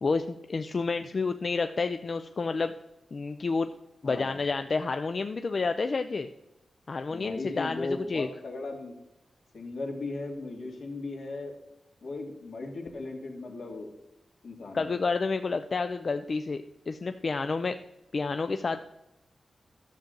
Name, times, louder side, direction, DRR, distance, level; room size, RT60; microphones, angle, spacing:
voice 1, 0.0-2.7 3.1-3.7 4.0-6.3 6.9-8.3 14.7-17.8 18.1-18.8, left 4 dB, 40° left, 8 dB, 0.4 m, -29 dB
voice 2, 4.0-4.4 7.1-8.9 9.5-11.5 12.0-13.9 14.4-15.0, left 2 dB, 70° left, 1 dB, 2.1 m, -37 dB
12.5 x 7.2 x 3.8 m, 0.88 s
wide cardioid pair, 165°, 0 cm